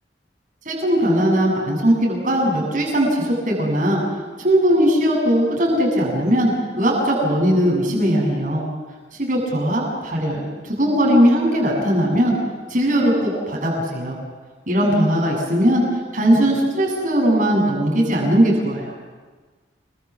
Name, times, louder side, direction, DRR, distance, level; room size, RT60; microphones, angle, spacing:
voice 1, 0.7-4.0 4.4-8.6 9.2-12.3 12.7-14.2 14.7-15.8 16.1-18.9, equal, 45° right, -2 dB, 7.7 m, -19 dB
27.5 x 23.5 x 7.4 m, 1.4 s
head